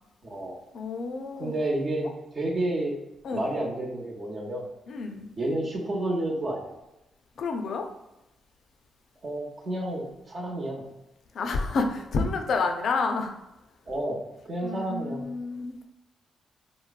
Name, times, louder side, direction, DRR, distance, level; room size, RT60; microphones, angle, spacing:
voice 1, 0.2-0.6 1.4-3.0 3.3-4.6 5.4-6.7 9.2-10.8 13.9-15.3, right 1 dB, 50° right, -2 dB, 0.8 m, -30 dB
voice 2, 0.7-1.5 3.2-3.5 4.9-5.3 7.4-7.9 11.3-13.3 14.6-15.8, left 4 dB, 65° left, 5 dB, 0.4 m, -29 dB
3.1 x 2.0 x 2.4 m, 0.92 s
supercardioid pair, 55°, 0 cm